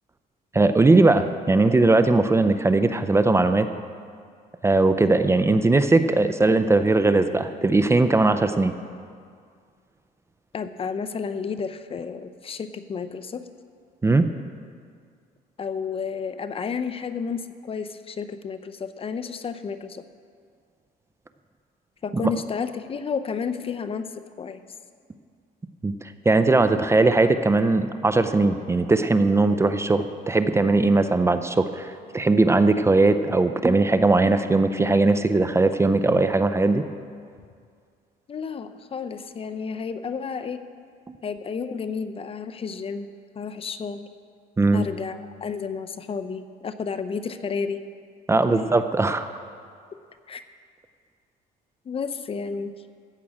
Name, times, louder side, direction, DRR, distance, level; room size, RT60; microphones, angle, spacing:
voice 1, 0.5-3.7 4.6-8.7 14.0-14.3 25.8-36.8 41.1-41.2 44.6-44.9 48.3-49.3, right 3 dB, 15° right, 10 dB, 0.5 m, -19 dB
voice 2, 10.5-13.5 15.6-20.0 22.0-24.6 38.3-40.6 41.2-44.1 44.7-47.8 48.5-48.7 50.3-50.4 51.9-52.7, left 5 dB, 35° left, 10 dB, 0.6 m, -31 dB
14.5 x 6.1 x 8.5 m, 2.2 s
cardioid pair, 110°, 17 cm